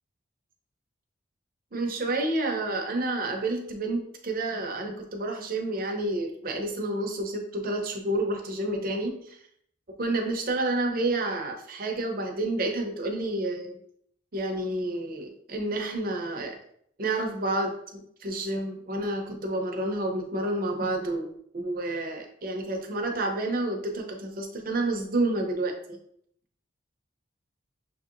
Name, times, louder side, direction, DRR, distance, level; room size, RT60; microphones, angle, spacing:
voice 1, 1.7-9.4 10.0-13.7 14.3-16.5 17.0-21.3 21.5-26.0, right 2 dB, 50° right, 2 dB, 0.7 m, -29 dB
6.5 x 2.8 x 2.5 m, 0.68 s
head